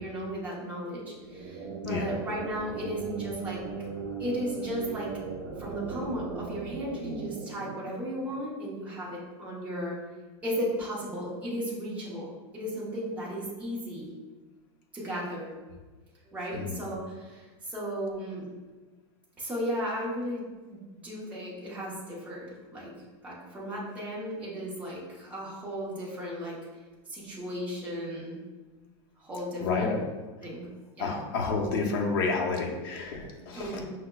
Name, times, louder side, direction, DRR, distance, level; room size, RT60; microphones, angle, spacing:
voice 1, 0.0-3.6 4.2-5.1 5.6-10.0 10.4-14.1 14.9-15.5 16.2-18.5 19.4-20.4 20.7-22.9 23.2-26.6 27.1-28.4 29.2-29.9 30.4-30.7 31.0-31.2 33.5-33.8, equal, 10° right, -7 dB, 0.8 m, -35 dB
sound 1, 1.1-8.7, right 4 dB, 55° right, 0.5 m, -39 dB
voice 2, 29.6-30.0 31.0-33.8, left 4 dB, 50° left, 1 dB, 0.6 m, -29 dB
5.7 x 2.0 x 2.2 m, 1.3 s
supercardioid pair, 170°, 15 cm